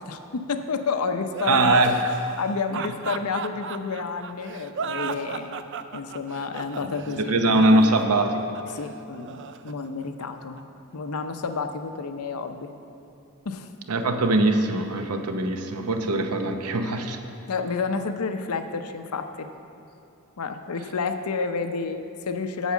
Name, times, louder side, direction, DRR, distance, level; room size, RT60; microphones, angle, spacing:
voice 1, 0.0-1.8 2.4-5.6 5.9-7.4 8.7-10.6 10.9-12.7 13.4-13.7 17.5-19.5 20.4-22.7, left 4 dB, 80° left, 8 dB, 0.6 m, -30 dB
sound 1, 1.3-10.6, right 6 dB, 55° right, 0.4 m, -34 dB
voice 2, 1.5-1.9 2.7-2.8 7.3-8.6 13.9-17.2, right 2 dB, 85° right, 6 dB, 0.8 m, -22 dB
8.2 x 7.2 x 7.1 m, 2.7 s
head